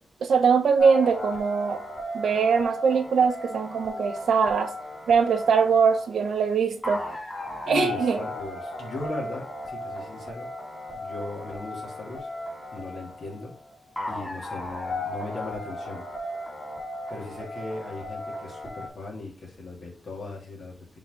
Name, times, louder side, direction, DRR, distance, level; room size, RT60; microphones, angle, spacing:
voice 1, 0.2-1.8 2.1-4.7 5.1-7.0 7.7-8.2, right 6 dB, 85° right, 1.2 m, -22 dB
sound 1, 0.8-18.9, left 1 dB, 15° left, 3.0 m, -36 dB
voice 2, 7.6-10.5 10.9-12.3 12.7-13.6 14.1-16.0 17.1-20.9, left 2 dB, 60° left, 3.2 m, -38 dB
6.9 x 4.1 x 3.9 m
wide cardioid pair, 150°, 0 cm